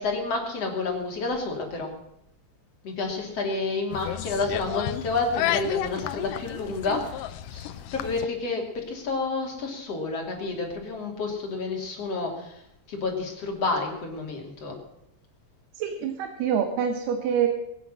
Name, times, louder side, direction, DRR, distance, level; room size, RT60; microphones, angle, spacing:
voice 1, 0.0-1.9 2.8-12.6 12.9-14.8, left 3 dB, 40° left, 1 dB, 3.5 m, -30 dB
sound 1, 3.9-8.3, left 12 dB, 75° left, 2.0 m, -32 dB
voice 2, 15.8-17.5, right 8 dB, 80° right, 6 dB, 3.1 m, -26 dB
22.0 x 9.8 x 6.3 m, 0.82 s
omnidirectional pair, 4.6 m